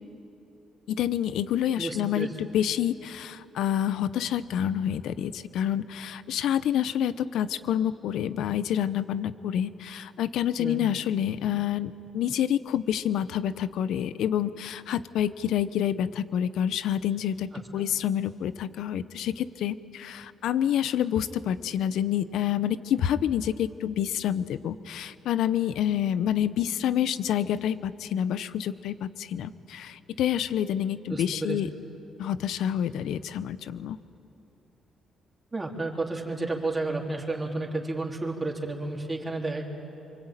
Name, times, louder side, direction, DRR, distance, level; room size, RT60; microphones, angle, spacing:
voice 1, 0.9-31.7 32.2-34.0, left 10 dB, 80° left, 14 dB, 0.8 m, -28 dB
voice 2, 1.8-2.3 10.6-10.8 17.8-17.9 31.1-31.6 35.5-39.6, right 2 dB, 20° right, -1 dB, 3.7 m, -31 dB
26.0 x 24.0 x 9.1 m, 2.9 s
cardioid pair, 90°, 0 cm